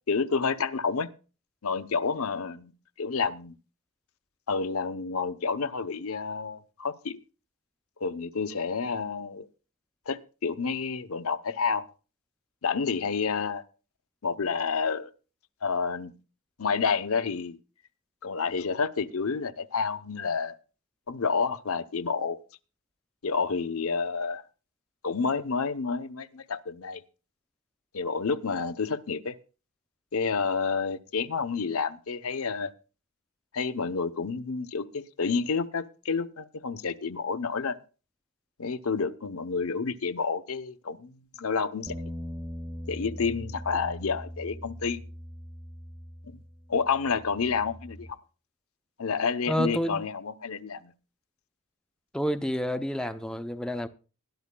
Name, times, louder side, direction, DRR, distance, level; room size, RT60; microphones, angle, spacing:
voice 1, 0.1-1.1 1.6-2.7 3.0-3.5 4.5-7.2 8.0-9.5 10.1-11.9 12.6-13.6 14.2-15.1 15.6-16.1 16.6-17.6 18.2-20.6 21.1-22.4 23.2-24.4 25.0-27.0 27.9-29.3 30.1-32.7 33.5-37.8 38.6-42.0 42.9-45.0 46.2-46.4 46.7-48.2 49.0-50.9, left 5 dB, 75° left, 0.7 m, -29 dB
sound 1, 41.9-48.1, equal, 20° right, 1.1 m, -41 dB
voice 2, 49.5-50.0 52.1-53.9, equal, 5° left, 0.5 m, -29 dB
20.5 x 12.0 x 2.2 m
head